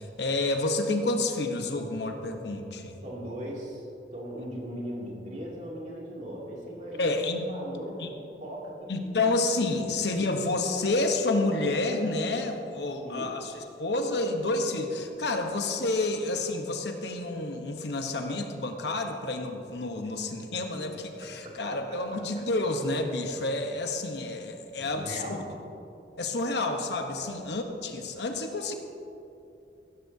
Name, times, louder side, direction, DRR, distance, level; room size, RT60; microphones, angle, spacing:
voice 1, 0.0-3.0 7.0-7.5 8.0-8.1 8.9-13.5 13.8-25.4 26.2-28.8, left 2 dB, 70° left, 4 dB, 1.0 m, -29 dB
voice 2, 3.0-3.8 4.1-7.2 7.5-9.3 9.8-10.1 12.8-13.3 21.2-21.8 24.8-25.5 27.2-27.4, equal, 45° right, -3 dB, 2.6 m, -39 dB
15.0 x 13.5 x 2.8 m, 2.7 s
head